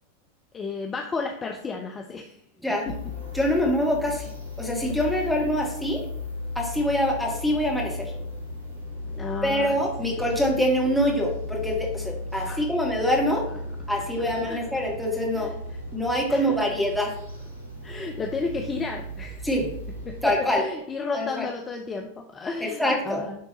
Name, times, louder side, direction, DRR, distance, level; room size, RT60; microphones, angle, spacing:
voice 1, 0.5-2.4 9.1-9.8 12.5-12.6 14.4-14.6 15.3-15.5 16.3-16.4 17.8-19.5 20.1-23.4, left 4 dB, 20° left, 3 dB, 0.6 m, -32 dB
sound 1, 2.8-20.4, left 2 dB, 70° right, 1.6 m, -36 dB
voice 2, 3.3-4.3 4.6-6.0 6.5-8.1 9.4-13.4 13.9-15.5 15.9-17.1 19.4-19.7 20.2-20.6 21.1-21.4 22.6-23.2, equal, ahead, -1 dB, 1.6 m, -25 dB
10.5 x 3.5 x 3.0 m, 0.73 s
figure-of-eight pair, 90°, 0 cm